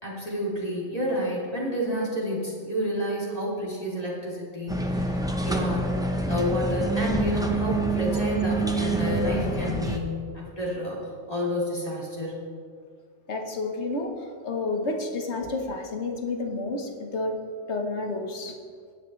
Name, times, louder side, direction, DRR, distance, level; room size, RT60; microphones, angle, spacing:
voice 1, 0.0-5.9 6.3-12.4, equal, 30° left, -6 dB, 2.9 m, -30 dB
sound 1, 4.7-10.0, right 2 dB, 5° right, 0.6 m, -26 dB
voice 2, 13.3-17.4 17.7-18.6, left 2 dB, 60° left, 3 dB, 1.5 m, -30 dB
17.5 x 9.5 x 3.2 m, 2.1 s
omnidirectional pair, 1.3 m